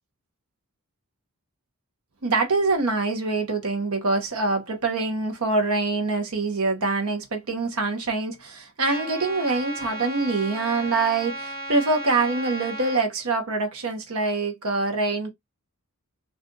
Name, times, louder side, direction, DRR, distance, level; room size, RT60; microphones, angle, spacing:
voice 1, 2.2-15.3, right 3 dB, 70° right, 0.8 m, -25 dB
Trumpet, 8.8-13.0, right 1 dB, 45° right, 0.8 m, -35 dB
2.4 x 2.3 x 3.8 m
head